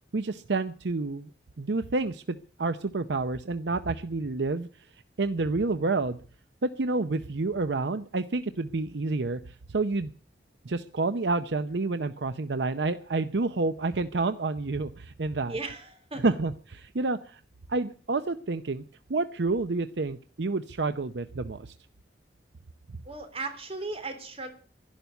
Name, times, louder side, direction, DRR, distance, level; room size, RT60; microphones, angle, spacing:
voice 1, 0.1-1.3 1.6-4.7 5.2-6.2 6.6-10.1 10.6-15.5 16.2-17.4 17.7-18.8 19.1-21.7, right 3 dB, 80° right, 11 dB, 0.7 m, -29 dB
voice 2, 15.5-16.2 23.0-24.5, right 3 dB, 35° right, 7 dB, 3.3 m, -36 dB
12.0 x 11.5 x 8.1 m, 0.43 s
head